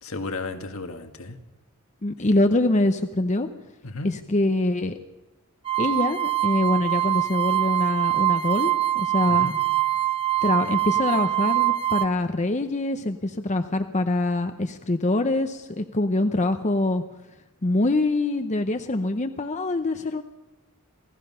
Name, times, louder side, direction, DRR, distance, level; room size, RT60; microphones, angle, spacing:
voice 1, 0.0-1.4 3.8-4.1 9.3-9.5, left 3 dB, 70° left, 6 dB, 1.8 m, -33 dB
voice 2, 2.0-3.5 4.0-5.0 5.8-9.5 10.4-17.0 17.6-20.2, left 2 dB, 35° left, 7 dB, 0.8 m, -24 dB
sound 1, 5.6-12.0, right 15 dB, 25° right, 0.8 m, -23 dB
27.0 x 17.5 x 5.6 m, 1.0 s
head